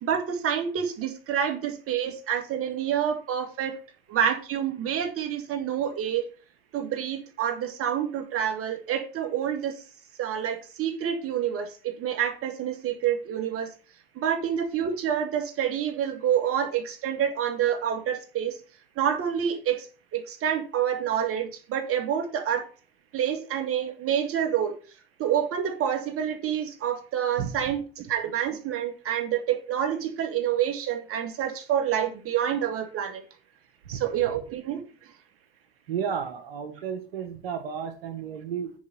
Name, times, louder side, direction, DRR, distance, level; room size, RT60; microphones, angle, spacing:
voice 1, 0.0-3.8 4.1-6.3 6.7-9.8 10.2-13.7 14.2-18.6 19.0-19.9 20.1-22.7 23.1-24.7 25.2-33.2 33.9-34.8, right 9 dB, 50° right, 6 dB, 2.2 m, -28 dB
voice 2, 35.9-38.7, right 7 dB, 90° right, 6 dB, 1.2 m, -32 dB
9.5 x 5.2 x 5.6 m, 0.37 s
hypercardioid pair, 75°, 29 cm